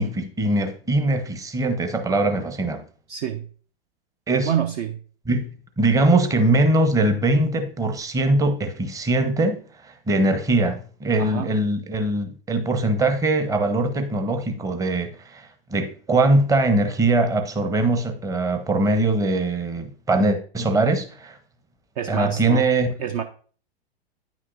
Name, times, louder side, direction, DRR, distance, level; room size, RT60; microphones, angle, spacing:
voice 1, 0.0-2.8 4.3-4.5 5.3-5.5 5.8-9.6 9.8-21.4 22.1-22.9, right 2 dB, 10° right, 0.8 m, -21 dB
voice 2, 3.1-3.5 4.5-5.0 11.2-11.5 22.0-22.7 23.0-23.2, right 9 dB, 40° right, 0.5 m, -26 dB
9.4 x 6.0 x 2.5 m
figure-of-eight pair, 105°, 31 cm